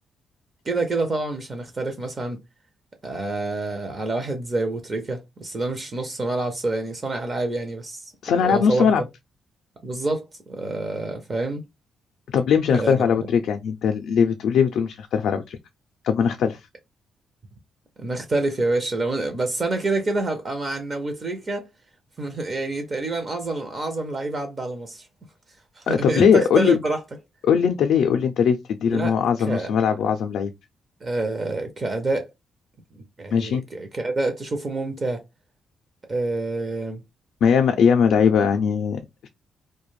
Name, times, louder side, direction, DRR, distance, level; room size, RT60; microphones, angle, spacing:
voice 1, 0.7-2.4 3.0-8.1 8.4-8.9 9.8-11.6 12.7-13.1 18.0-21.7 22.2-25.1 25.8-27.0 28.9-29.1 29.5-29.7 31.0-32.3 33.2-35.2 36.1-37.0, right 2 dB, 30° right, 0.4 m, -27 dB
voice 2, 8.2-9.0 12.3-15.6 16.0-16.6 25.9-26.8 27.4-30.5 33.3-33.6 37.4-39.3, left 7 dB, 70° left, 0.3 m, -20 dB
2.4 x 2.1 x 3.0 m
cardioid pair, 160°, 0 cm